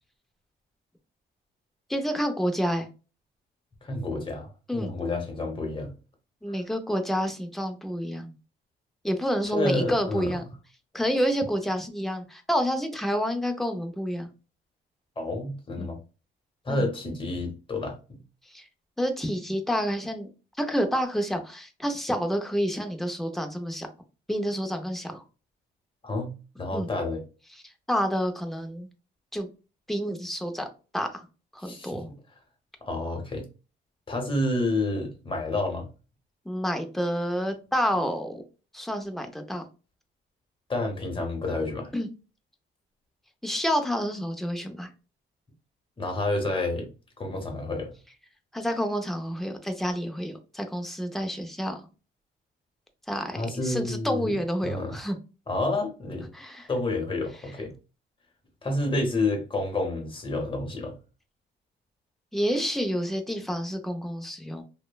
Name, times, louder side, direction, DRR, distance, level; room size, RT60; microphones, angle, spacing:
voice 1, 1.9-2.9 4.7-4.9 6.4-8.3 9.0-10.4 10.9-14.3 15.8-15.9 16.7-16.9 18.5-18.7 19.0-20.3 20.6-23.9 24.3-25.2 26.7-26.9 27.9-28.9 29.3-29.5 29.9-30.7 30.9-31.3 31.5-32.1 36.5-38.4 38.7-39.6 41.9-42.1 43.4-44.9 48.5-51.8 53.1-55.2 56.3-56.7 62.3-64.6, equal, ahead, 5 dB, 0.5 m, -29 dB
voice 2, 3.8-5.9 6.5-6.6 9.5-10.3 15.2-16.0 16.6-18.2 26.0-26.3 26.6-27.2 31.6-32.0 32.8-33.4 34.1-35.8 40.7-41.9 46.0-46.9 47.2-47.9 53.3-54.4 54.6-55.0 55.5-56.3 56.7-57.7 58.6-60.9, left 2 dB, 25° left, 3 dB, 0.9 m, -29 dB
3.0 x 2.1 x 2.2 m, 0.32 s
cardioid pair, 90°, 20 cm